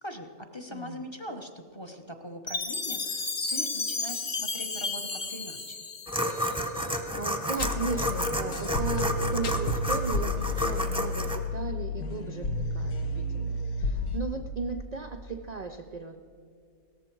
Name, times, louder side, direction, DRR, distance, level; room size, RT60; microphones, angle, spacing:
voice 1, 0.0-5.8, left 1 dB, 25° left, 5 dB, 0.8 m, -41 dB
voice 2, 0.7-1.0 7.1-16.2, right 4 dB, 70° right, 5 dB, 0.4 m, -36 dB
Chime, 2.5-6.7, left 4 dB, 40° left, 1.1 m, -33 dB
sound 1, 6.1-11.4, equal, 5° right, 0.7 m, -30 dB
sound 2, 7.6-14.2, left 2 dB, 85° left, 1.3 m, -31 dB
17.0 x 14.0 x 4.6 m, 2.3 s
omnidirectional pair, 1.5 m